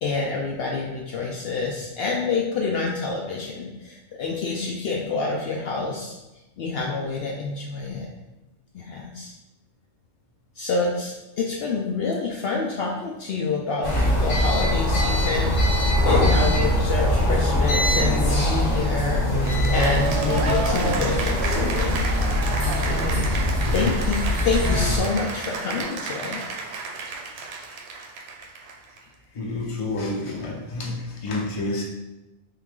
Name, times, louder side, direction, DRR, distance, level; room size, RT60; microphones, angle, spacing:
voice 1, 0.0-6.2 6.6-8.1 8.7-9.3 10.6-13.9 14.2-22.1 22.9-23.3 23.7-26.4, left 4 dB, 65° left, -1 dB, 0.7 m, -27 dB
sound 1, 13.8-25.0, left 1 dB, 80° left, 1.4 m, -22 dB
Cheering / Applause, 19.4-29.0, right 4 dB, 70° right, 0.8 m, -31 dB
voice 2, 23.6-24.0 29.3-31.8, left 2 dB, 30° left, -2 dB, 0.7 m, -29 dB
3.7 x 3.2 x 3.6 m, 1.0 s
omnidirectional pair, 1.2 m